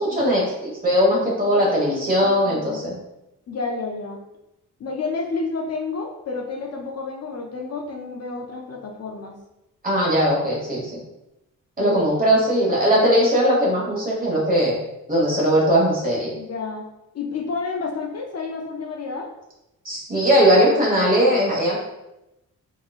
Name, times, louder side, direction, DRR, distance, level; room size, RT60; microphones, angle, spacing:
voice 1, 0.0-3.0 9.8-11.0 11.8-14.8 15.1-16.3 19.8-21.8, equal, 25° right, -4 dB, 1.2 m, -19 dB
voice 2, 1.5-2.8 3.5-4.2 4.8-9.4 11.8-12.0 12.8-12.9 16.4-16.8 17.1-19.3, left 4 dB, 50° left, 2 dB, 0.4 m, -30 dB
3.7 x 3.0 x 2.3 m, 0.91 s
wide cardioid pair, 125°, 33 cm